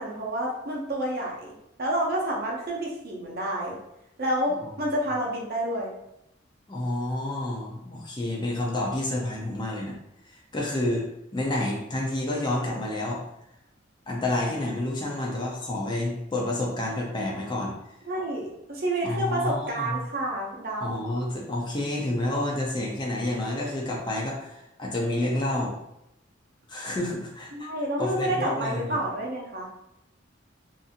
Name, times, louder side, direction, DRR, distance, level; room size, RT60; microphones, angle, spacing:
voice 1, 0.0-3.8 4.2-4.5 4.8-5.9 18.1-21.0 27.5-29.8, right 1 dB, 50° right, -2 dB, 0.6 m, -29 dB
voice 2, 6.7-10.0 10.5-11.0 11.3-13.2 14.1-17.8 19.0-20.0 20.8-25.7 26.7-27.7 28.0-29.0, left 1 dB, 25° left, -2 dB, 0.5 m, -29 dB
2.7 x 2.6 x 2.4 m, 0.83 s
head